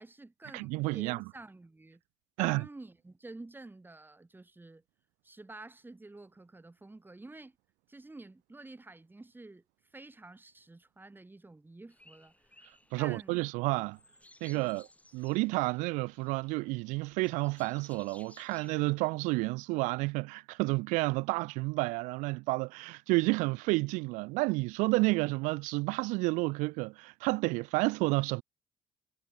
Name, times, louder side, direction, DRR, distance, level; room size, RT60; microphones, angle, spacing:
voice 1, 0.0-2.0 2.4-4.8 5.2-7.6 7.9-9.6 9.9-12.7 13.0-13.4 14.5-14.8, right 2 dB, 15° right, 1.7 m, -50 dB
voice 2, 0.5-1.2 2.4-2.7 12.9-14.0 14.4-14.9 15.1-28.4, right 25 dB, 85° right, 0.4 m, -30 dB
sound 1, 11.9-19.2, left 1 dB, 10° left, 6.7 m, -60 dB
supercardioid pair, 65°, 13 cm